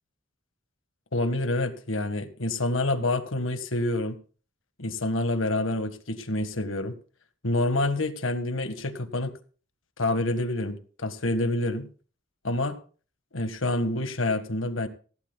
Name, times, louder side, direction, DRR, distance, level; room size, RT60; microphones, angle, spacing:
voice 1, 1.1-4.2 4.8-7.0 7.4-9.3 10.0-11.9 12.4-12.8 13.3-14.9, left 2 dB, 85° left, 9 dB, 1.6 m, -27 dB
17.0 x 16.0 x 2.3 m, 0.39 s
head